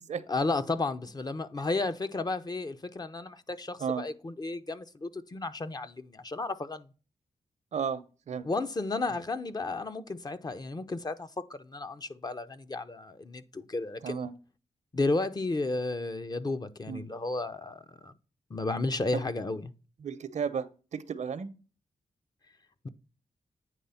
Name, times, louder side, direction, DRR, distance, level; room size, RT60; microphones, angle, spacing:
voice 1, 0.3-6.9 8.4-14.3 14.9-18.1 18.5-19.7, left 3 dB, 30° left, 0.7 m, -33 dB
voice 2, 7.7-8.5 14.0-14.3 16.9-17.0 19.1-19.2 20.0-21.5, right 7 dB, 70° right, 0.8 m, -34 dB
9.2 x 3.4 x 5.6 m
cardioid pair, 55°, 13 cm